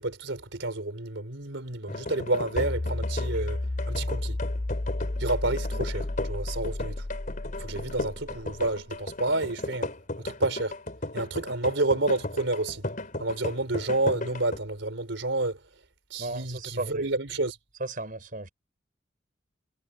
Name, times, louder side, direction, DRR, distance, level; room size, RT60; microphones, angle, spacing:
voice 1, 0.0-4.4 5.2-7.0 7.6-9.9 10.2-10.8 11.1-12.8 13.2-15.6 16.1-17.6, right 2 dB, 90° right, 3.7 m, -29 dB
sound 1, 1.9-14.6, left 2 dB, 45° left, 4.3 m, -36 dB
sound 2, 2.6-8.8, left 2 dB, 25° left, 0.5 m, -32 dB
voice 2, 16.2-17.1 17.8-18.5, right 2 dB, 50° right, 4.1 m, -35 dB
head